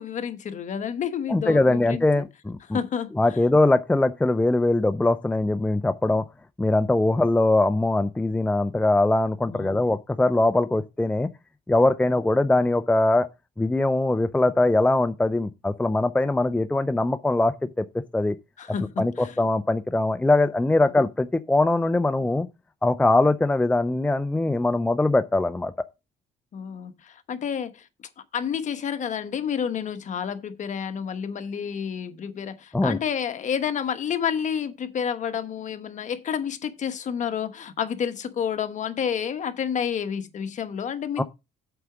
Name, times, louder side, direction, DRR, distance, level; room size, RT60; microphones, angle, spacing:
voice 1, 0.0-2.2 2.7-3.4 9.4-9.8 18.6-19.3 26.5-27.9 28.3-41.2, left 8 dB, 45° left, 1.2 m, -30 dB
voice 2, 1.3-2.8 3.2-6.2 6.6-11.3 11.7-13.3 13.6-18.4 19.0-22.5 22.8-25.7 32.7-33.0 41.2-41.3, left 2 dB, 5° left, 0.5 m, -22 dB
7.9 x 4.9 x 5.9 m
cardioid pair, 110°, 17 cm